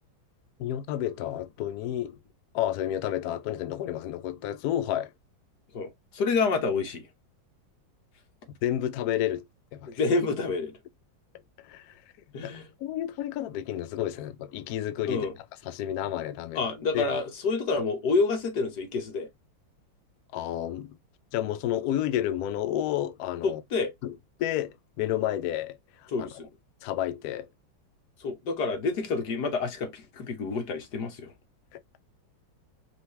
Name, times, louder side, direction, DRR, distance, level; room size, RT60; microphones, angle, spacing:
voice 1, 0.6-2.2 2.5-5.1 8.6-9.5 9.7-9.9 11.6-12.0 12.4-12.5 12.8-15.3 15.6-16.6 16.9-17.1 20.3-21.0 21.3-23.6 24.0-26.3 26.8-27.5 31.7-31.8, left 12 dB, 90° left, 0.8 m, -30 dB
voice 2, 5.7-7.0 10.0-10.7 12.3-12.7 15.1-15.3 16.6-19.3 23.4-23.9 26.1-26.5 28.2-31.3, left 4 dB, 60° left, 1.6 m, -28 dB
5.2 x 2.7 x 3.2 m
omnidirectional pair, 2.2 m